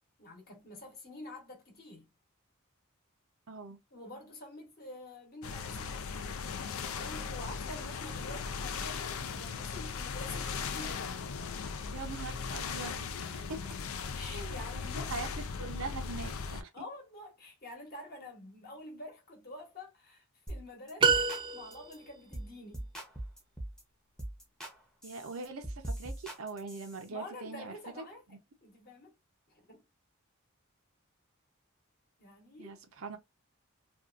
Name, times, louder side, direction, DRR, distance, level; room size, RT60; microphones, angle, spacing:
voice 1, 0.2-2.1 3.9-6.4 6.9-11.1 14.1-15.1 16.7-22.9 27.1-29.1 29.5-29.8 32.2-32.8, left 1 dB, 45° left, 1.0 m, -48 dB
voice 2, 3.5-3.8 11.9-13.1 13.5-13.8 14.3-14.6 15.1-16.9 25.0-27.7 32.6-33.2, right 4 dB, 75° right, 0.6 m, -42 dB
sound 1, 5.4-16.6, left 5 dB, 80° left, 0.4 m, -38 dB
sound 2, 20.5-20.6 20.9-21.4 21.7-21.9 22.3-22.5 22.7-23.8 24.2-24.7 25.0-27.0, right 1 dB, 5° left, 0.7 m, -41 dB
sound 3, 21.0-22.1, right 5 dB, 25° right, 0.3 m, -27 dB
2.6 x 2.3 x 2.4 m
head